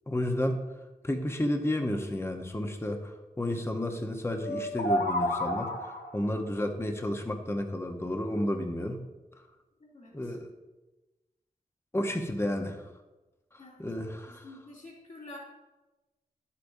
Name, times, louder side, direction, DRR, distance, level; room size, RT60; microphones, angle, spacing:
voice 1, 0.1-0.6 1.0-5.7 6.1-9.0 9.4-9.5 10.1-10.5 11.9-12.9 13.8-14.5, left 1 dB, 15° left, 4 dB, 0.9 m, -31 dB
sound 1, 4.4-6.2, left 1 dB, 70° left, 1.2 m, -30 dB
voice 2, 9.8-10.4 13.6-15.4, left 2 dB, 55° left, -4 dB, 2.6 m, -49 dB
11.0 x 8.4 x 2.7 m, 1.1 s
cardioid pair, 60°, 16 cm